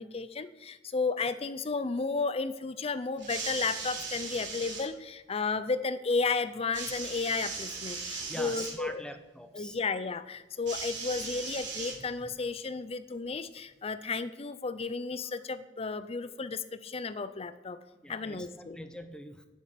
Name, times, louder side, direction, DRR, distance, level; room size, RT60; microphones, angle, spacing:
voice 1, 0.0-9.0 9.5-17.8 18.1-18.8, left 4 dB, 35° left, 13 dB, 0.6 m, -33 dB
sound 1, 3.2-4.9 6.7-8.8 10.7-12.3 13.3-13.4, right 4 dB, 85° right, 3.9 m, -38 dB
voice 2, 8.3-9.8 18.0-19.5, equal, 5° left, 7 dB, 0.9 m, -43 dB
10.0 x 7.4 x 8.3 m, 1.1 s
head